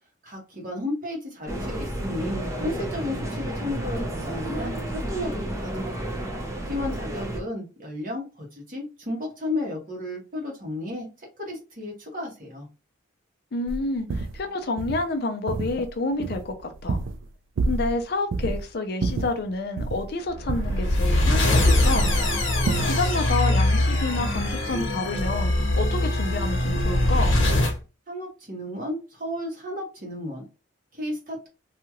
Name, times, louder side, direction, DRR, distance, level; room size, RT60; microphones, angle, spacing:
voice 1, 0.2-6.0 6.7-11.1 11.4-12.7 28.1-30.4 30.9-31.5, left 1 dB, 40° right, 1.3 m, -33 dB
sound 1, 1.5-7.4, right 1 dB, 15° right, 0.5 m, -31 dB
voice 2, 13.5-17.0 17.7-22.1 22.5-22.6 22.8-27.3, left 3 dB, 50° left, 0.5 m, -29 dB
sound 2, 13.7-13.8 14.1-14.4 14.8-15.0 15.5-15.9 16.2-17.3 17.6-18.0 18.3-18.6 19.0-20.1 20.5-21.7 22.0-22.3 22.7-23.0, right 3 dB, 70° right, 0.4 m, -29 dB
sound 3, 20.4-27.8, left 1 dB, 70° left, 1.0 m, -22 dB
2.8 x 2.4 x 2.9 m
head